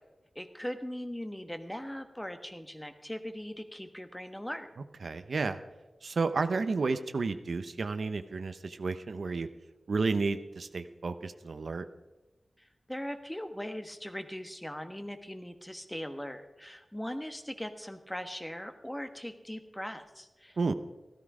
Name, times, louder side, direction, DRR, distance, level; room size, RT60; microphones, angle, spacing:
voice 1, 0.3-4.7 12.6-20.7, equal, 10° left, 7 dB, 1.3 m, -40 dB
voice 2, 5.0-5.6 6.0-9.5 9.9-11.8 20.6-20.7, right 4 dB, 75° right, 10 dB, 0.7 m, -31 dB
14.5 x 13.0 x 4.9 m, 1.1 s
wide cardioid pair, 75°, 0 cm